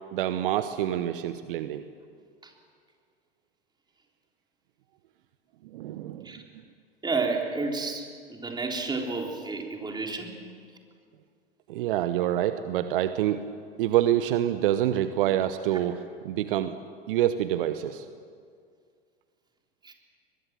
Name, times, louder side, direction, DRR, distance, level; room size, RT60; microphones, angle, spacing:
voice 1, 0.1-1.8 5.7-6.3 11.7-13.5 13.8-16.7 17.1-18.1, right 12 dB, 60° right, 11 dB, 1.0 m, -26 dB
voice 2, 7.0-10.3 19.8-19.9, right 3 dB, 15° right, 1 dB, 3.8 m, -31 dB
22.5 x 22.0 x 7.6 m, 2.1 s
figure-of-eight pair, 85°, 30 cm